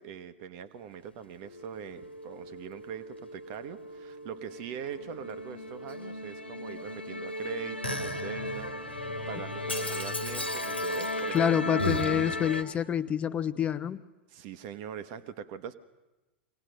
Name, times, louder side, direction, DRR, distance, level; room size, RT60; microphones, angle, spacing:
voice 1, 0.0-11.5 11.7-11.9 14.3-15.7, right 8 dB, 45° right, 11 dB, 1.1 m, -42 dB
Musical instrument, 1.4-12.6, left 1 dB, 90° left, 1.4 m, -35 dB
voice 2, 11.3-14.0, left 9 dB, 20° left, 13 dB, 0.6 m, -27 dB
23.5 x 18.0 x 6.6 m, 1.1 s
figure-of-eight pair, 90°, 6 cm